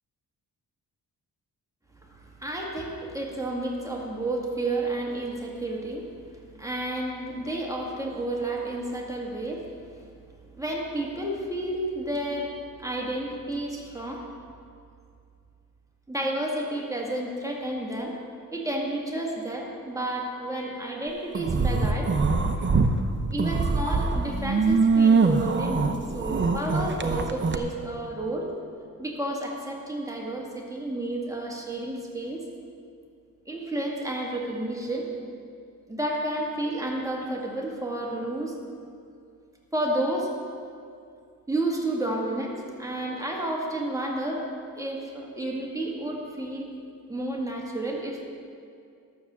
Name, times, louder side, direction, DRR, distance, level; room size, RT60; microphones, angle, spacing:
voice 1, 2.0-6.0 6.3-9.6 10.6-12.5 12.8-14.3 16.1-18.2 18.5-22.1 23.3-28.5 29.0-32.4 33.5-35.1 35.9-38.5 39.7-40.3 41.5-44.5 44.8-46.7 47.1-48.3, right 1 dB, 10° right, -2 dB, 1.9 m, -31 dB
sound 1, 21.3-22.9 23.3-27.6, right 4 dB, 30° right, 0.9 m, -23 dB
12.0 x 7.1 x 7.4 m, 2.4 s
cardioid pair, 90°, 37 cm